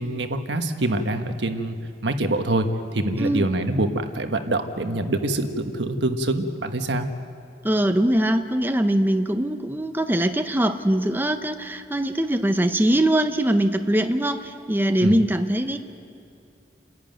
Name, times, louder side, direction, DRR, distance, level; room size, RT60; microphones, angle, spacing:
voice 1, 0.0-1.8 2.0-7.1 15.0-15.2, right 1 dB, 75° right, 6 dB, 1.4 m, -25 dB
voice 2, 7.6-15.8, right 1 dB, 10° right, 7 dB, 0.7 m, -22 dB
29.5 x 11.0 x 9.1 m, 2.5 s
head